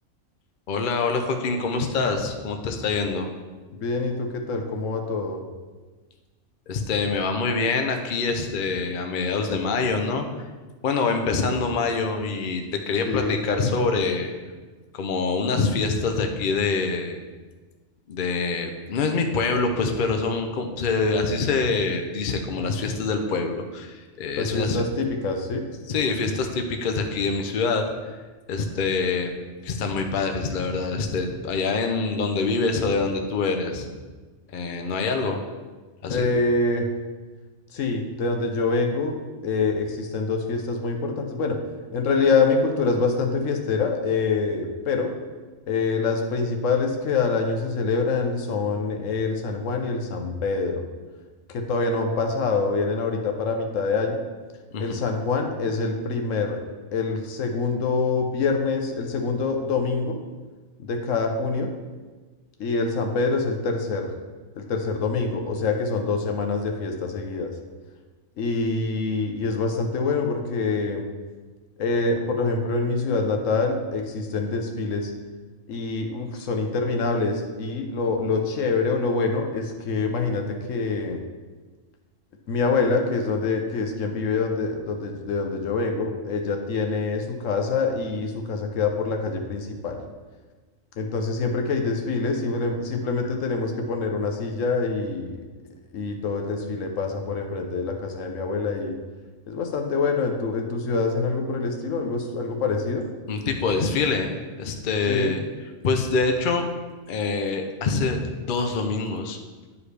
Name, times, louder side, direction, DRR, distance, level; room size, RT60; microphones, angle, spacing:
voice 1, 0.7-3.3 6.7-10.3 10.8-14.3 14.9-17.2 18.1-24.8 25.9-28.1 28.5-29.3 29.6-33.9 34.5-35.4 36.0-36.3 54.7-55.0 103.3-104.3 104.6-105.4 105.8-106.7 107.1-109.4, left 4 dB, 50° left, 5 dB, 0.6 m, -25 dB
voice 2, 3.7-5.4 13.0-13.4 24.3-25.6 36.1-36.9 37.7-39.1 39.4-41.6 41.9-45.1 45.7-50.8 51.5-54.2 54.8-56.6 56.9-60.2 60.8-61.7 62.6-64.1 64.6-67.5 68.4-71.1 71.8-75.1 75.7-81.2 82.5-90.0 91.0-95.4 95.9-99.0 99.5-103.1 105.1-105.3, left 4 dB, 70° left, 3 dB, 1.1 m, -25 dB
9.6 x 4.9 x 3.3 m, 1.3 s
omnidirectional pair, 1.4 m